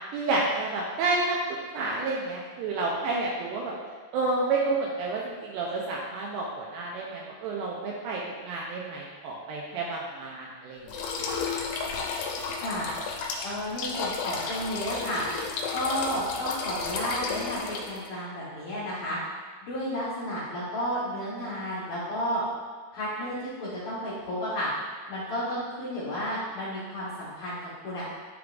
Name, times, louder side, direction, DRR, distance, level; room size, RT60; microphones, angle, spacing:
voice 1, 0.1-1.4 1.7-3.7 4.1-10.9 11.2-11.4, right 3 dB, 80° right, -3 dB, 2.4 m, -30 dB
sound 1, 10.9-18.1, left 4 dB, 80° left, 2.9 m, -33 dB
voice 2, 12.6-12.9 13.4-15.2 15.7-19.2 19.6-22.4 22.9-24.7 25.1-27.6 27.8-28.0, equal, 65° left, -10 dB, 1.9 m, -32 dB
10.5 x 3.7 x 2.4 m, 1.4 s
omnidirectional pair, 5.2 m